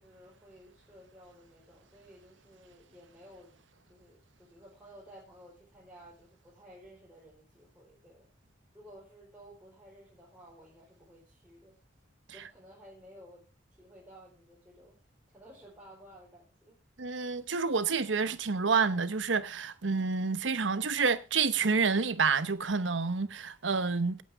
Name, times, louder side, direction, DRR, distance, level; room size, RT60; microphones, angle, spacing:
voice 1, 0.0-3.5 3.9-8.3 8.7-11.8 12.3-13.5 13.8-15.0 15.3-16.8, equal, 10° right, 4.3 m, -55 dB
voice 2, 17.0-24.2, right 5 dB, 85° right, 1.0 m, -28 dB
17.0 x 8.8 x 3.6 m
head